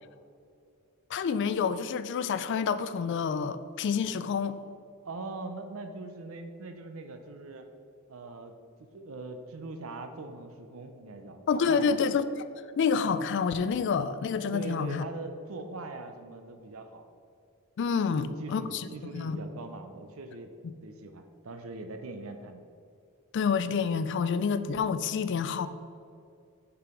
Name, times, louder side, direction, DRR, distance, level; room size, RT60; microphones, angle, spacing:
voice 1, 1.1-4.6 11.5-12.2 12.8-15.0 17.8-18.9 19.1-19.4 23.3-25.7, left 6 dB, 55° left, 13 dB, 0.3 m, -28 dB
voice 2, 5.0-7.7 8.1-8.5 8.8-12.0 14.5-17.1 18.1-20.5 20.8-22.6, right 3 dB, 65° right, 7 dB, 0.6 m, -41 dB
6.7 x 4.8 x 5.0 m, 2.4 s
head